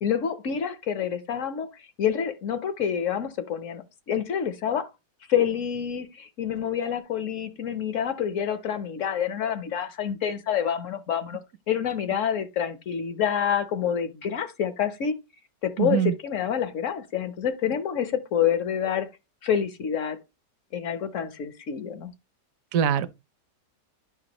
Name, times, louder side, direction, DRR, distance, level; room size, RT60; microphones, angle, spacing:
voice 1, 0.0-4.9 5.3-11.4 11.7-15.2 15.6-19.1 19.4-20.2 20.7-22.1, left 8 dB, 55° left, 1.0 m, -27 dB
voice 2, 15.8-16.1 22.7-23.1, right 9 dB, 60° right, 1.0 m, -22 dB
9.6 x 5.7 x 2.9 m
omnidirectional pair, 1.9 m